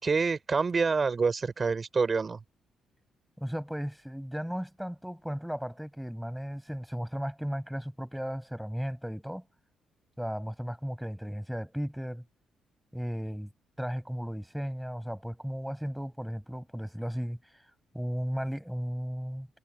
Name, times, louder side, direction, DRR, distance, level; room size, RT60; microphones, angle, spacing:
voice 1, 0.0-2.4, right 4 dB, 35° right, 6.2 m, -27 dB
voice 2, 3.4-9.4 10.2-12.2 12.9-13.5 13.8-17.6 17.9-19.5, equal, ahead, 6.0 m, -35 dB
cardioid pair, 90°, 0 cm